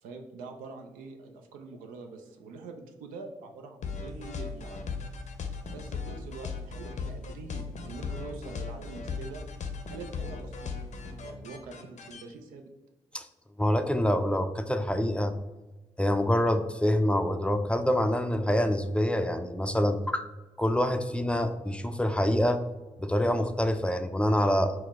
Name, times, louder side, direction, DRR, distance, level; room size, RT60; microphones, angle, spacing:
voice 1, 0.0-5.1 5.7-9.4 9.9-10.8 11.2-12.6, right 4 dB, 90° right, 5 dB, 0.4 m, -44 dB
sound 1, 3.8-12.2, left 4 dB, 60° left, 0.5 m, -37 dB
voice 2, 13.6-15.4 16.0-20.3 20.6-22.6 23.0-24.7, equal, 10° left, 7 dB, 0.4 m, -26 dB
4.4 x 2.0 x 3.5 m, 1.1 s
supercardioid pair, 45°, 14 cm